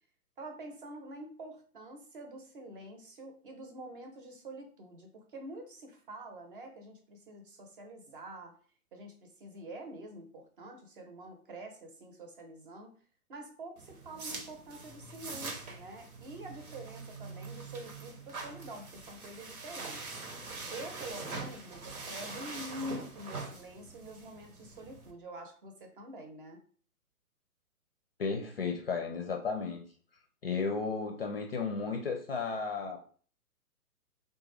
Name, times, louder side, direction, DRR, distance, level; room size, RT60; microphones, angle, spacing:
voice 1, 0.4-8.5 8.9-12.9 13.3-20.0 20.7-26.6, right 1 dB, 35° right, 4 dB, 0.8 m, -46 dB
sound 1, 13.8-25.1, right 3 dB, 70° right, 0.9 m, -44 dB
voice 2, 28.2-29.8 30.4-33.0, left 4 dB, 40° left, 3 dB, 0.5 m, -34 dB
3.8 x 2.2 x 3.2 m, 0.43 s
figure-of-eight pair, 125°, 46 cm